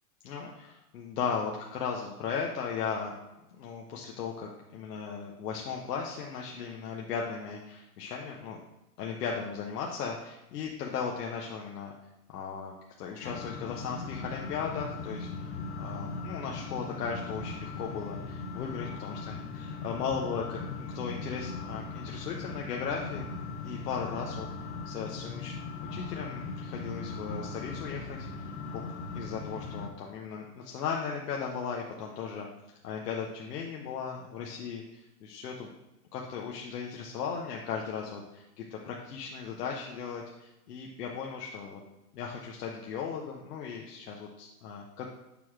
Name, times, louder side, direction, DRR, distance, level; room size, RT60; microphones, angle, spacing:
voice 1, 0.2-3.1 3.5-8.6 9.0-11.9 12.3-15.3 15.8-23.3 23.6-24.5 24.8-25.5 25.8-28.3 29.1-32.5 32.8-35.7 36.1-41.8 42.1-45.1, left 6 dB, 90° left, -1 dB, 0.9 m, -37 dB
sound 1, 13.2-29.9, left 4 dB, 45° left, 0.8 m, -39 dB
6.9 x 3.1 x 4.8 m, 0.94 s
supercardioid pair, 175°, 46 cm